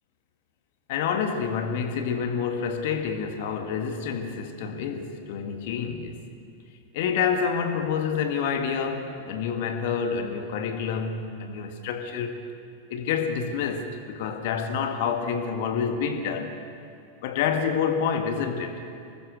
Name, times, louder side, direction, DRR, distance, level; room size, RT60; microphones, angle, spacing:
voice 1, 0.9-6.2 6.9-12.4 12.9-16.6 17.2-18.8, left 6 dB, 50° left, 6 dB, 1.9 m, -28 dB
24.5 x 20.0 x 6.7 m, 2.5 s
figure-of-eight pair, 90°, 0 cm